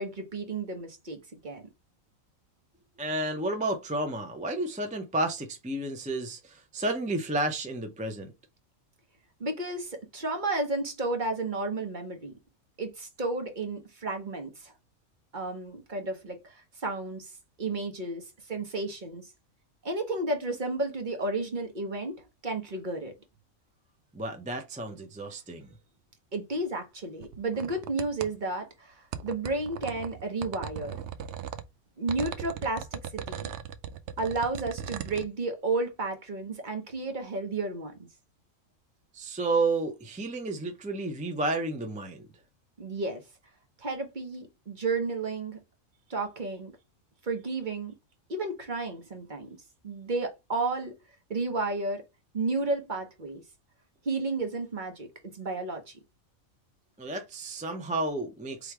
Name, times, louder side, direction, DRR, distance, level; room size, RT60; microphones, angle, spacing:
voice 1, 0.0-1.6 9.4-12.4 12.8-14.7 15.3-17.3 17.6-19.3 19.8-23.1 26.3-31.0 32.0-33.5 34.2-38.1 42.8-43.2 43.8-45.6 46.1-46.7 47.2-48.0 48.3-49.6 49.8-50.9 51.3-52.0 52.3-53.4 54.0-55.1 55.3-56.0, right 3 dB, 40° right, 1.0 m, -32 dB
voice 2, 3.0-8.3 24.1-25.7 39.1-42.3 57.0-58.7, right 2 dB, 10° right, 0.4 m, -31 dB
sound 1, 27.2-28.3 29.1-31.6 32.1-35.2, right 9 dB, 65° right, 0.8 m, -38 dB
3.5 x 3.1 x 4.6 m
omnidirectional pair, 1.4 m